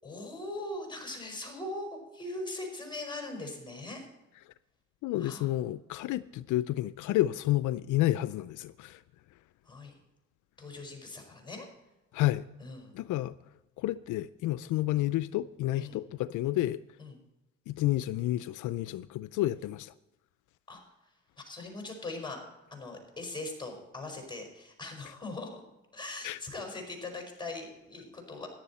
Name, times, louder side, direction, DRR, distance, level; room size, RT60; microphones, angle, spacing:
voice 1, 0.0-4.1 5.2-5.5 9.6-9.9 10.6-11.7 12.6-12.9 15.8-16.0 17.0-17.2 20.7-20.8 21.4-22.4 22.7-25.6 25.9-28.5, left 2 dB, 15° left, 5.0 m, -40 dB
voice 2, 5.0-9.0 12.1-12.5 12.9-13.3 13.8-16.8 17.7-19.9 26.2-26.4, left 15 dB, 80° left, 0.5 m, -30 dB
14.5 x 11.0 x 4.2 m
cardioid pair, 90°, 30 cm